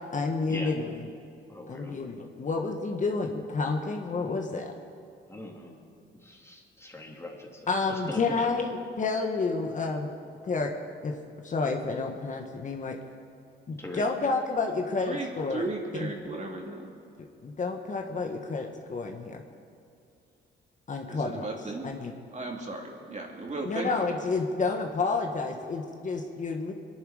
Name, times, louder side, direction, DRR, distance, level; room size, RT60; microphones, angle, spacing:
voice 1, 0.1-1.0 1.7-4.7 7.7-10.1 10.4-10.7 11.0-11.2 11.4-13.0 13.7-15.6 16.0-16.1 17.2-19.4 20.9-21.5 21.8-22.1 23.6-26.7, left 4 dB, 40° left, 3 dB, 1.4 m, -30 dB
voice 2, 1.5-2.0 5.3-5.8 6.1-8.4 13.8-14.1, left 1 dB, 15° left, 0 dB, 2.7 m, -41 dB
voice 3, 15.0-16.9 21.0-21.9 22.3-23.9, right 3 dB, 35° right, 0 dB, 2.8 m, -35 dB
23.0 x 11.0 x 5.0 m, 2.5 s
cardioid pair, 90°, 20 cm